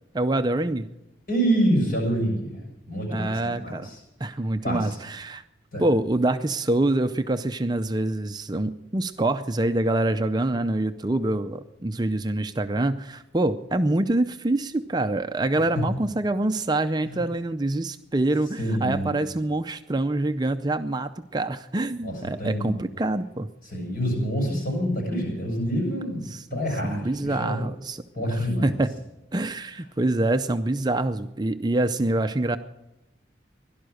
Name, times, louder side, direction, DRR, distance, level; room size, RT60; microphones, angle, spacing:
voice 1, 0.1-0.9 3.1-3.9 4.2-5.4 5.8-23.5 26.3-28.9 29.3-32.6, right 2 dB, 20° right, 9 dB, 0.5 m, -25 dB
voice 2, 1.3-2.5 2.9-4.0 4.6-5.0 5.7-5.8 17.0-17.2 18.6-19.1 22.0-22.8 23.6-27.6 28.1-28.8, equal, 50° left, 0 dB, 6.7 m, -27 dB
17.0 x 12.0 x 6.5 m, 0.92 s
head